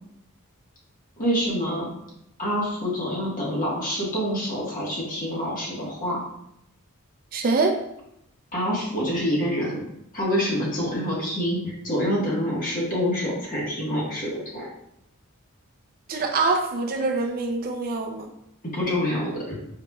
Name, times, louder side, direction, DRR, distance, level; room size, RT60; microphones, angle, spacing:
voice 1, 1.2-1.9 2.4-6.2 8.5-9.8 10.1-14.7 18.7-19.6, equal, 40° left, -5 dB, 1.4 m, -26 dB
voice 2, 7.3-7.8 16.1-18.3, right 3 dB, 40° right, 4 dB, 0.4 m, -24 dB
5.7 x 3.0 x 2.3 m, 0.78 s
head